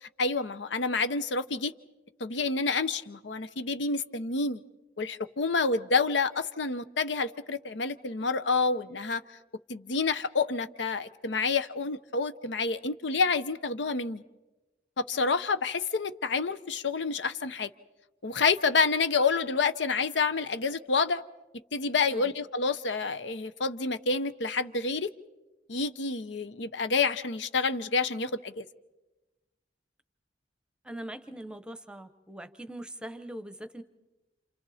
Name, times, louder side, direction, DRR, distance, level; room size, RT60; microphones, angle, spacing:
voice 1, 0.0-1.7 2.2-4.6 5.0-9.2 9.7-14.2 15.0-17.7 18.2-21.2 21.7-25.1 25.7-28.6, left 4 dB, 85° left, 12 dB, 0.8 m, -28 dB
voice 2, 30.8-33.8, right 1 dB, 5° right, 10 dB, 0.8 m, -42 dB
29.0 x 28.0 x 4.2 m, 1.1 s
head